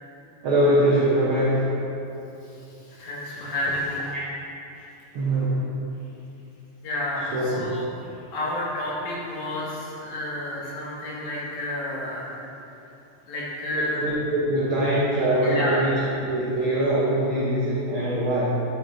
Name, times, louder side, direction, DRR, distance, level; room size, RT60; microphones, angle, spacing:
voice 1, 0.4-1.8 4.1-4.2 5.1-5.6 7.3-7.7 8.0-8.1 9.5-9.6 10.5-10.6 13.7-15.9 16.2-18.4, right 1 dB, 85° right, -6 dB, 1.1 m, -23 dB
voice 2, 2.4-4.0 6.8-7.9 8.3-12.4 13.3-14.0 15.4-16.1, left 1 dB, 70° left, -6 dB, 2.9 m, -30 dB
10.0 x 7.5 x 2.6 m, 2.8 s
omnidirectional pair, 3.7 m